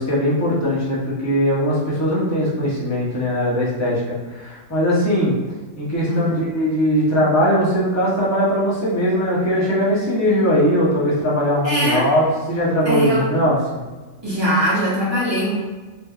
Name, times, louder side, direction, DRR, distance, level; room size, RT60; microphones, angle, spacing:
voice 1, 0.0-5.3 5.8-13.8, equal, 15° left, -7 dB, 0.6 m, -20 dB
voice 2, 6.1-6.4 11.6-12.1 12.8-13.3 14.2-15.5, equal, 20° right, -8 dB, 1.0 m, -21 dB
3.4 x 3.1 x 2.3 m, 1.3 s
omnidirectional pair, 1.4 m